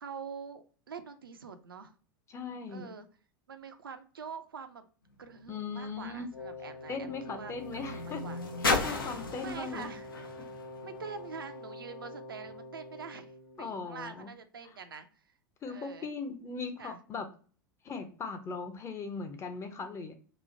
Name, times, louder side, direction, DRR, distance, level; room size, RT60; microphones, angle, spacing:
voice 1, 0.0-1.9 2.7-3.1 3.5-4.9 5.2-8.4 9.4-10.1 10.8-13.3 13.6-15.3 15.7-16.1 16.8-17.0, right 6 dB, 85° right, 8 dB, 0.4 m, -45 dB
voice 2, 2.3-2.9 5.5-6.3 6.9-8.2 8.6-9.9 13.6-14.3 15.6-17.3 17.8-20.1, left 4 dB, 25° left, 7 dB, 0.5 m, -39 dB
sound 1, 5.1-11.6 12.4-12.5, left 3 dB, 85° left, 0.5 m, -36 dB
Wind instrument woodwind instrument, 6.3-13.6, left 2 dB, 65° left, 1.1 m, -46 dB
2.9 x 2.0 x 2.5 m, 0.39 s
figure-of-eight pair, 85°, 11 cm